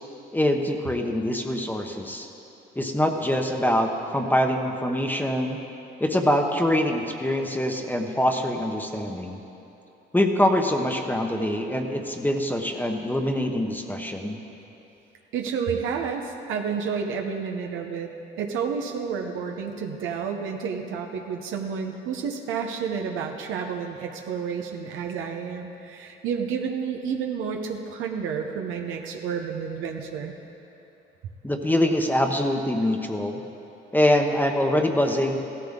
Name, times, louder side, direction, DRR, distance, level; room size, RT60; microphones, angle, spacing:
voice 1, 0.3-2.3 2.7-5.6 6.0-9.4 10.1-14.4 31.4-33.4 33.9-35.4, left 1 dB, 10° left, 3 dB, 0.9 m, -24 dB
voice 2, 15.3-18.1 18.4-30.3, right 6 dB, 90° right, 3 dB, 0.8 m, -30 dB
16.0 x 13.5 x 3.7 m, 2.9 s
cardioid pair, 90°, 20 cm